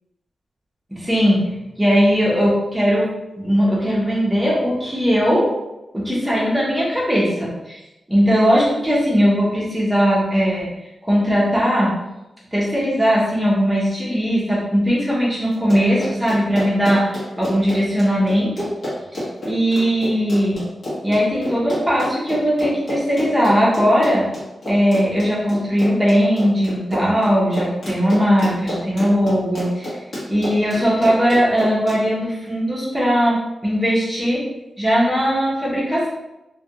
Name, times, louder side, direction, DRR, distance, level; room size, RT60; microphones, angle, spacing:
voice 1, 0.9-1.4 1.8-3.1 3.4-5.5 5.9-7.8 8.1-10.7 11.1-11.9 12.5-18.7 19.1-20.6 21.0-24.2 24.6-29.9 30.3-34.4 34.8-36.1, equal, 10° right, -6 dB, 0.8 m, -19 dB
Run, 15.5-32.0, equal, 45° left, 1.0 m, -29 dB
2.4 x 2.2 x 2.8 m, 0.95 s
wide cardioid pair, 160°, 0 cm